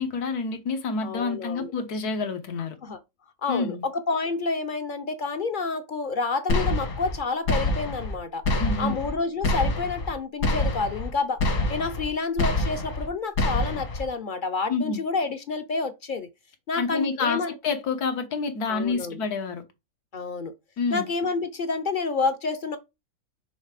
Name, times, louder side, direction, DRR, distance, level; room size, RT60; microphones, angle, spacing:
voice 1, 0.0-2.7 3.5-3.8 8.5-9.0 14.7-15.0 16.8-19.6 20.8-21.1, left 4 dB, 90° left, 1.6 m, -28 dB
voice 2, 1.0-1.7 2.8-3.0 3.4-8.4 8.8-11.4 11.7-16.3 16.7-17.5 18.7-19.2 20.1-20.5 20.9-22.8, left 4 dB, 55° left, 0.5 m, -29 dB
sound 1, 6.5-7.2 7.5-8.2 8.5-9.1 9.4-10.1 10.4-11.1 11.4-12.1 12.4-13.1 13.4-14.1, left 2 dB, 75° left, 2.1 m, -26 dB
6.4 x 3.2 x 4.8 m
omnidirectional pair, 1.6 m